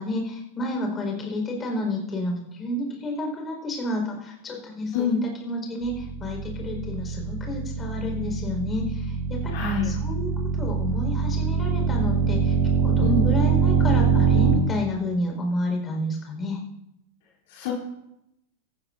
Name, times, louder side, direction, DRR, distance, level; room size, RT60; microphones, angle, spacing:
voice 1, 0.0-9.6 9.8-12.5 12.8-16.6, left 1 dB, 20° left, 1 dB, 4.8 m, -30 dB
sound 1, 5.8-14.5, right 6 dB, 65° right, 4.0 m, -24 dB
voice 2, 9.5-9.9 13.0-13.3 17.5-17.7, left 5 dB, 50° left, -3 dB, 3.3 m, -25 dB
18.5 x 14.5 x 2.7 m, 0.84 s
figure-of-eight pair, 90°, 0 cm